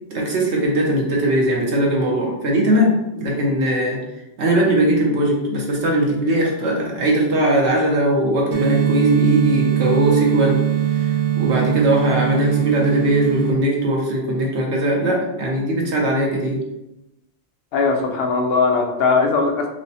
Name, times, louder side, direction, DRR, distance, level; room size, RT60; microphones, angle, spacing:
voice 1, 0.1-4.0 4.4-10.6 10.9-16.6, right 1 dB, 75° right, -2 dB, 1.1 m, -20 dB
sound 1, 8.5-13.5, right 10 dB, 55° right, 0.7 m, -21 dB
voice 2, 17.7-19.7, left 4 dB, 65° left, 3 dB, 0.7 m, -19 dB
4.6 x 2.0 x 2.7 m, 0.92 s
omnidirectional pair, 1.2 m